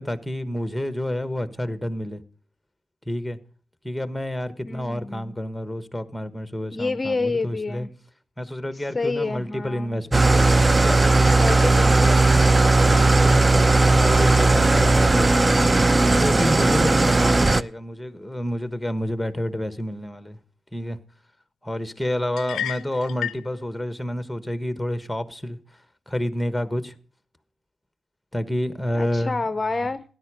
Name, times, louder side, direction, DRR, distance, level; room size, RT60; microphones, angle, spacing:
voice 1, 0.0-2.2 3.1-3.4 3.8-7.9 8.4-11.7 12.7-15.6 16.2-20.4 20.7-21.0 21.6-25.6 26.1-26.9 28.3-29.4, left 1 dB, 5° left, 1.3 m, -29 dB
voice 2, 4.6-5.3 6.7-7.9 8.7-10.0 11.3-12.5 28.9-30.0, left 3 dB, 30° left, 0.7 m, -29 dB
Engine starting / Idling, 10.1-17.6, right 2 dB, 25° right, 0.5 m, -17 dB
sound 1, 22.4-23.5, left 10 dB, 80° left, 0.5 m, -31 dB
13.0 x 10.5 x 5.1 m
supercardioid pair, 55°, 0 cm